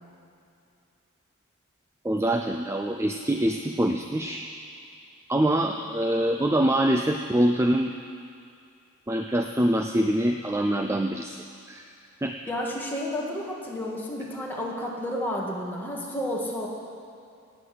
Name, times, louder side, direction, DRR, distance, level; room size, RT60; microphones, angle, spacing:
voice 1, 2.0-4.5 5.3-7.9 9.1-11.8 12.2-12.4, right 1 dB, 10° right, 4 dB, 0.4 m, -25 dB
voice 2, 12.5-16.7, left 1 dB, 10° left, -3 dB, 2.0 m, -31 dB
18.0 x 8.0 x 7.8 m, 2.5 s
head